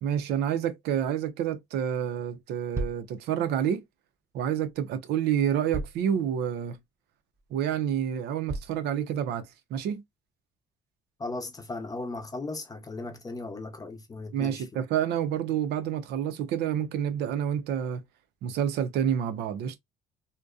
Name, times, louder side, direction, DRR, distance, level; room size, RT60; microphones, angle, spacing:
voice 1, 0.0-3.8 4.3-6.8 7.5-9.5 9.7-10.0 14.3-18.0 18.4-19.8, right 9 dB, 80° right, 0.6 m, -28 dB
sound 1, 2.7-3.1 4.7-4.8 5.7-6.1 6.7-6.8 7.3-7.4 8.5-8.8, right 2 dB, 15° right, 0.4 m, -34 dB
voice 2, 11.2-14.6, left 2 dB, 20° left, 0.7 m, -37 dB
2.6 x 2.2 x 2.3 m
cardioid pair, 110°, 17 cm